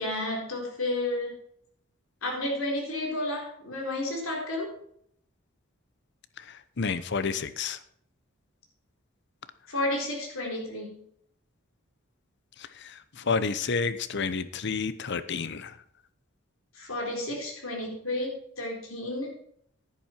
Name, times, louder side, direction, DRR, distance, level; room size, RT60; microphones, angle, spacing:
voice 1, 0.0-1.3 2.2-4.8 9.7-11.0 16.7-19.3, left 1 dB, 80° left, 0 dB, 4.0 m, -31 dB
voice 2, 6.4-7.8 12.6-15.8, left 5 dB, 60° left, 13 dB, 0.8 m, -30 dB
10.5 x 10.5 x 4.5 m, 0.66 s
head